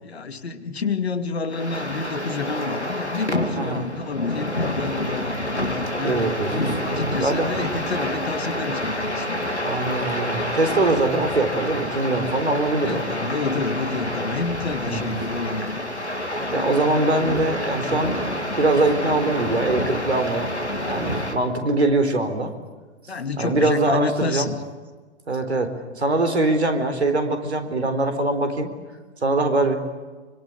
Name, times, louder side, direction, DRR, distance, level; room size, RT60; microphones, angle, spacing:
voice 1, 0.0-6.3 6.8-9.6 12.7-15.9 16.4-16.8 23.1-24.6, left 4 dB, 70° left, 9 dB, 2.5 m, -29 dB
sound 1, 1.5-21.3, left 1 dB, 85° left, 3.4 m, -28 dB
voice 2, 6.0-6.8 7.2-7.6 9.6-13.1 14.8-15.2 16.5-20.5 20.9-22.5 23.4-24.5 25.3-28.7 29.2-29.8, right 2 dB, 75° right, 8 dB, 4.1 m, -23 dB
26.5 x 25.0 x 8.7 m, 1.4 s
figure-of-eight pair, 110°, 33 cm